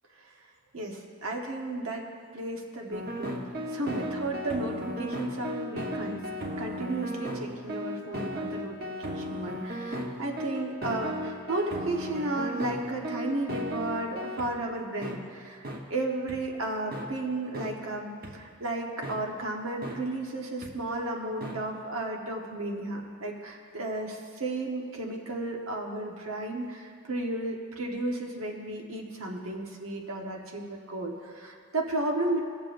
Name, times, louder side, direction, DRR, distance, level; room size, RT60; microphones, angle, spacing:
voice 1, 0.7-2.1 2.3-6.2 6.5-15.6 15.9-32.4, right 2 dB, 75° right, 1 dB, 1.2 m, -33 dB
sound 1, 2.9-14.5 15.0-15.2 15.6-15.8 16.3-16.4 16.9-17.1 17.5-17.7 18.2-18.3 19.0-19.2 19.8-20.0 20.6-20.7 21.4-21.5, equal, 45° right, 1.0 m, -35 dB
18.5 x 7.1 x 2.6 m, 2.4 s
head